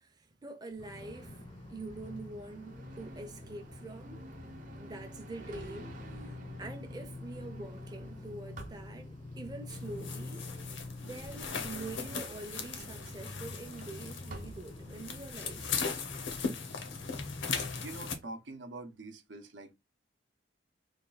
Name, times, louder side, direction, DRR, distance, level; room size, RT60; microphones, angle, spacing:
voice 1, 0.0-1.4 1.7-4.3 4.8-15.7, right 2 dB, 20° right, 0.6 m, -45 dB
sound 1, 0.7-16.0, right 1 dB, 45° right, 0.9 m, -51 dB
sound 2, 0.8-18.2, left 2 dB, 25° left, 0.5 m, -46 dB
sound 3, 9.7-18.2, left 5 dB, 85° left, 0.9 m, -39 dB
voice 2, 17.8-19.7, right 2 dB, 80° right, 0.8 m, -45 dB
3.4 x 2.4 x 3.9 m
head